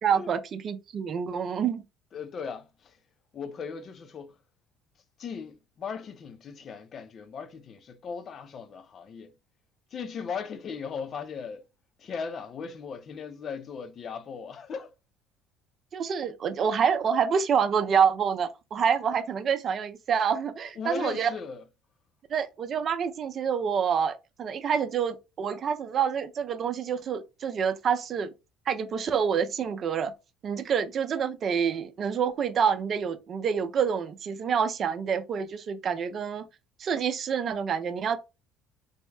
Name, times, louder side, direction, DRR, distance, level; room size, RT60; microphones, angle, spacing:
voice 1, 0.0-1.8 15.9-21.3 22.3-28.3 28.7-30.1 30.4-36.4 36.8-38.2, right 7 dB, 50° right, 0.5 m, -27 dB
voice 2, 2.1-3.0 3.3-4.4 5.2-9.3 9.9-11.6 12.0-14.9 20.8-21.6, left 6 dB, 45° left, 0.5 m, -38 dB
3.5 x 2.1 x 3.2 m
supercardioid pair, 80°, 0 cm